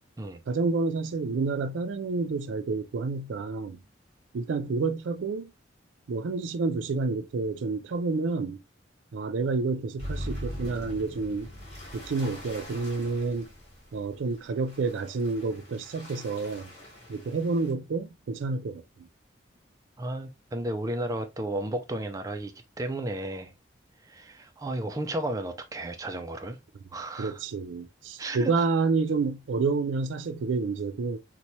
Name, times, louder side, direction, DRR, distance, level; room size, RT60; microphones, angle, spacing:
voice 1, 0.5-3.8 4.3-5.5 6.1-8.6 9.1-11.5 11.9-13.5 13.9-16.7 17.1-18.8 27.2-31.2, right 4 dB, 80° right, 0.4 m, -29 dB
sound 1, 10.0-17.7, equal, 35° left, 1.9 m, -41 dB
voice 2, 20.0-23.5 24.1-26.6 26.9-27.4 28.2-28.6, right 1 dB, 20° right, 0.4 m, -33 dB
4.1 x 2.2 x 2.9 m
head